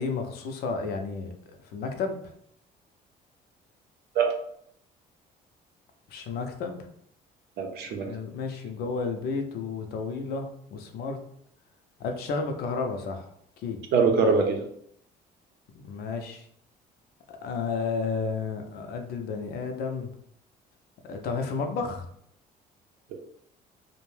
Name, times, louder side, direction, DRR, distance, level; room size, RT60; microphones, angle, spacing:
voice 1, 0.0-1.3 1.6-2.3 6.1-6.8 8.0-11.2 12.0-13.3 13.6-13.8 15.7-16.5 17.3-20.1 21.0-22.1, left 4 dB, 70° left, 5 dB, 0.5 m, -32 dB
voice 2, 7.6-8.1 13.9-14.6, right 4 dB, 75° right, 3 dB, 0.6 m, -23 dB
2.5 x 2.1 x 3.2 m, 0.69 s
cardioid pair, 110°, 17 cm